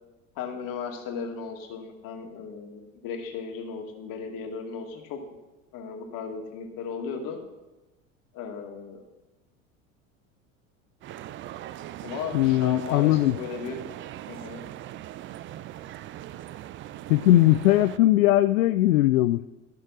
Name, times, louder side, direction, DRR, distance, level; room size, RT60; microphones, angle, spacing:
voice 1, 0.4-5.2 5.7-7.4 8.3-9.0 12.0-13.9 14.3-14.6, left 6 dB, 50° left, 3 dB, 2.3 m, -36 dB
sound 1, 11.0-18.0, right 13 dB, 30° right, 0.4 m, -40 dB
voice 2, 12.3-13.4 17.1-19.5, left 15 dB, 75° left, 13 dB, 0.5 m, -20 dB
13.5 x 6.6 x 6.1 m, 1.0 s
hypercardioid pair, 75°, 41 cm